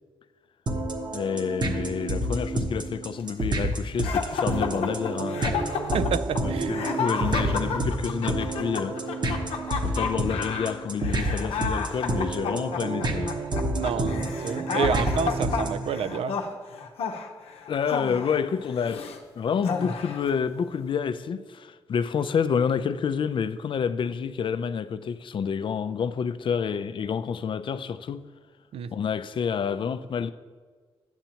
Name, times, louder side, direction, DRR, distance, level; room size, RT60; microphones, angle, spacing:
sound 1, 0.7-15.9, right 1 dB, 50° right, 1.0 m, -29 dB
voice 1, 1.1-5.4 6.7-9.0 9.8-13.4 17.7-19.1 19.3-28.3 28.9-30.3, left 6 dB, 55° left, 0.4 m, -28 dB
sound 2, 4.0-19.2 19.6-20.3, left 5 dB, 85° left, 0.7 m, -31 dB
voice 2, 5.9-6.7 13.7-16.4 28.7-28.9, right 6 dB, 75° right, 0.4 m, -29 dB
8.9 x 7.9 x 2.9 m
cardioid pair, 70°, 10 cm